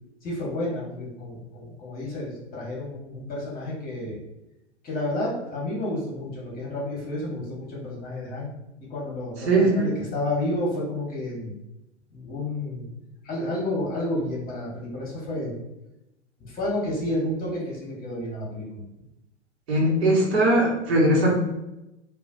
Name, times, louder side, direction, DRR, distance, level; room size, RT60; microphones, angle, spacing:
voice 1, 0.2-4.2 4.8-8.5 8.9-11.5 12.1-12.9 13.2-15.5 16.4-18.8, left 1 dB, 25° left, -4 dB, 1.5 m, -30 dB
voice 2, 9.5-9.9 19.7-21.3, right 1 dB, 60° right, -3 dB, 1.4 m, -20 dB
4.8 x 2.7 x 2.6 m, 0.91 s
hypercardioid pair, 110°, 36 cm